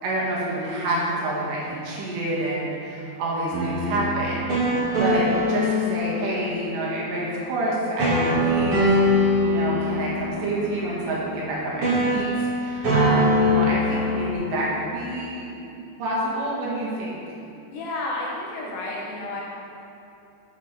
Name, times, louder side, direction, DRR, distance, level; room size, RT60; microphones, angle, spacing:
voice 1, 0.0-12.3 12.6-15.5 16.0-17.2, right 1 dB, 75° right, -6 dB, 4.3 m, -28 dB
sound 1, 3.5-6.7 8.0-11.5 11.8-14.3, left 1 dB, 35° right, 3.0 m, -23 dB
voice 2, 17.7-19.4, left 2 dB, 75° left, -4 dB, 4.0 m, -31 dB
12.0 x 7.7 x 4.6 m, 2.9 s
omnidirectional pair, 5.1 m